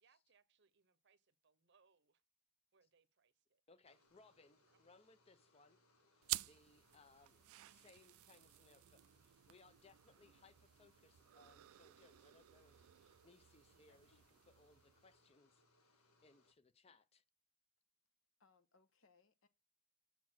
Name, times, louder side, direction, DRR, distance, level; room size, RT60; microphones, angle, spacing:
voice 1, 0.0-2.2 2.7-4.1 4.6-4.8, right 5 dB, 55° right, 0.7 m, -77 dB
voice 2, 3.7-5.8 6.1-7.4 7.6-17.2, left 3 dB, 30° left, 0.5 m, -68 dB
sound 1, 3.8-16.5, left 2 dB, 85° left, 1.5 m, -75 dB
sound 2, 6.2-15.2, right 19 dB, 80° right, 0.3 m, -51 dB
voice 3, 13.7-14.2 16.9-17.0 18.4-19.5, left 4 dB, 65° left, 0.9 m, -74 dB
7.1 x 4.3 x 6.0 m
head